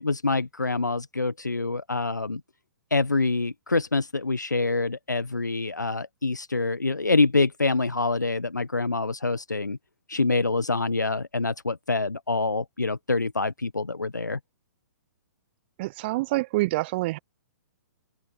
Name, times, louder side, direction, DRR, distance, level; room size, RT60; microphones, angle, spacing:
voice 1, 0.0-2.4 2.9-9.8 10.1-14.4, left 3 dB, 85° left, 1.2 m, -26 dB
voice 2, 15.8-17.2, right 20 dB, 35° right, 0.9 m, -26 dB
figure-of-eight pair, 120°, 9 cm